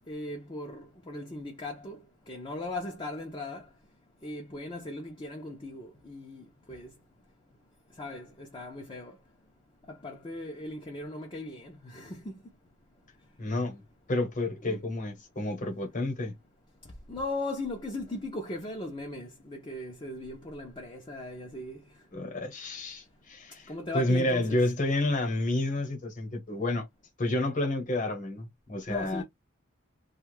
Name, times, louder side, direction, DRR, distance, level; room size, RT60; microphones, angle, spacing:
voice 1, 0.1-2.0 2.3-3.6 4.2-6.9 8.0-9.2 9.9-12.4 14.6-14.8 17.1-21.8 23.7-24.6 28.9-29.2, left 2 dB, 25° left, 0.6 m, -38 dB
voice 2, 13.4-13.8 14.1-16.3 22.1-26.8 27.2-29.2, left 1 dB, 40° left, 1.1 m, -30 dB
2.5 x 2.3 x 3.2 m
head